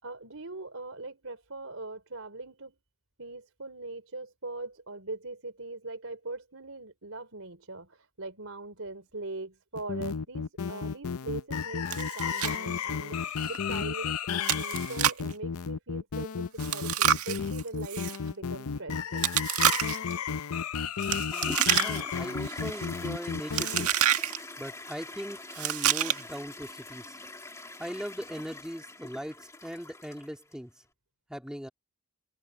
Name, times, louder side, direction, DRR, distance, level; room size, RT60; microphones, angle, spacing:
voice 1, 0.0-2.8 3.2-13.2 13.5-19.3, right 2 dB, 65° right, 4.6 m, -41 dB
sound 1, 9.8-23.9, left 6 dB, 80° left, 0.6 m, -33 dB
Chewing mastication, 11.9-12.6 12.8-12.9 13.4-13.6 14.4-15.3 16.6-18.2 19.2-20.1 21.0-22.2 22.5-22.8 23.5-24.4 25.5-26.4, right 9 dB, 80° right, 1.8 m, -28 dB
Toilet flush, 21.3-30.5, left 2 dB, 15° left, 2.2 m, -43 dB
voice 2, 21.3-23.9 24.6-27.2 27.8-30.7 31.3-31.7, equal, 5° right, 2.2 m, -39 dB
head